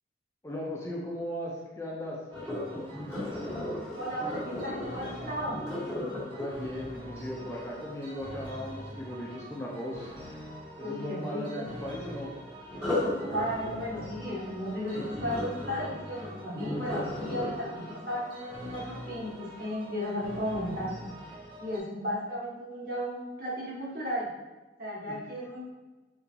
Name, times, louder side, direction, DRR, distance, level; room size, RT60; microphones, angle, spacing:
voice 1, 0.4-2.2 6.4-10.1 10.8-12.3 12.8-12.9 25.1-25.2, equal, 15° left, -3 dB, 0.5 m, -37 dB
Sink (filling or washing), 2.3-8.3 12.7-19.7 20.2-20.5 21.0-21.1, left 1 dB, 5° right, 1.3 m, -36 dB
sound 1, 2.3-21.8, equal, 30° right, 0.9 m, -45 dB
voice 2, 4.0-5.6 10.8-11.7 13.3-21.2 21.6-24.3 24.8-25.7, equal, 55° right, -6 dB, 1.4 m, -35 dB
3.9 x 3.8 x 2.9 m, 1.2 s
head